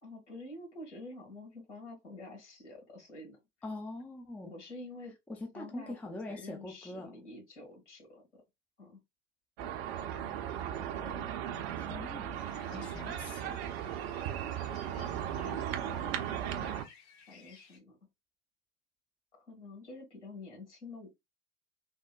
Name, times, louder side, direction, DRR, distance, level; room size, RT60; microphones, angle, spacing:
voice 1, 0.0-3.4 4.4-5.1 5.5-8.4 8.8-9.0 12.7-13.1 14.9-16.4 17.3-18.0 19.3-21.1, left 2 dB, 75° left, 1.8 m, -48 dB
voice 2, 3.6-4.5 5.3-7.2 11.8-13.6, left 2 dB, 5° left, 0.4 m, -43 dB
sound 1, 9.6-16.8, right 10 dB, 60° right, 0.6 m, -37 dB
sound 2, 12.3-17.8, left 5 dB, 55° left, 0.8 m, -58 dB
3.6 x 2.1 x 2.3 m
figure-of-eight pair, 80°, 35 cm